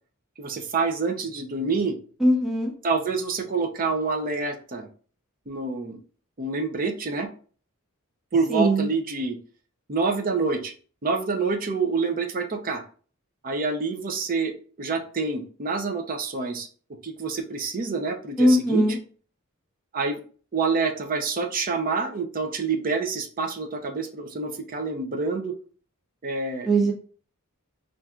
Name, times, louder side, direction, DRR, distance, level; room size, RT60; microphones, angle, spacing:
voice 1, 0.4-2.0 2.8-4.9 5.5-6.0 6.4-7.3 8.3-9.4 9.9-10.7 11.0-12.8 13.4-14.5 14.8-16.7 17.0-19.0 19.9-20.2 20.5-25.5 26.2-26.7, right 4 dB, 40° right, 4 dB, 0.6 m, -27 dB
voice 2, 2.2-2.7 8.5-8.9 18.4-19.0 26.7-26.9, right 1 dB, ahead, -3 dB, 0.7 m, -20 dB
5.6 x 2.6 x 2.4 m, 0.41 s
head